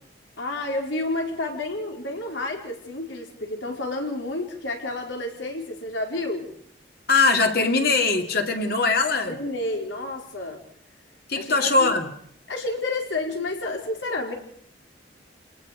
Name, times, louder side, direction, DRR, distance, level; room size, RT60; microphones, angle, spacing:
voice 1, 0.4-6.5 9.3-10.6 11.3-11.9 12.5-14.3, left 2 dB, 85° left, 4.7 m, -30 dB
voice 2, 7.1-9.4 11.3-12.1, left 3 dB, 55° left, 2.5 m, -21 dB
29.0 x 19.5 x 5.1 m
head